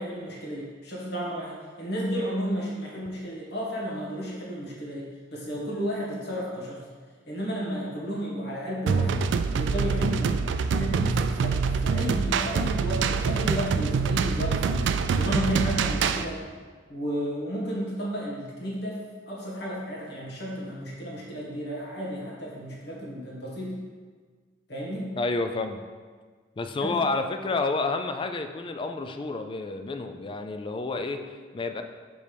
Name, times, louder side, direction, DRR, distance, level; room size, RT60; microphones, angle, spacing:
voice 1, 0.0-6.8 7.3-9.3 9.6-16.4 16.9-19.0 19.3-23.8 24.7-25.1 26.8-26.9, equal, 65° left, -4 dB, 1.6 m, -33 dB
sound 1, 8.9-16.3, right 5 dB, 80° right, 0.3 m, -25 dB
voice 2, 25.2-25.8 26.6-31.8, left 3 dB, 30° left, 7 dB, 0.3 m, -30 dB
6.0 x 5.3 x 3.4 m, 1.5 s
head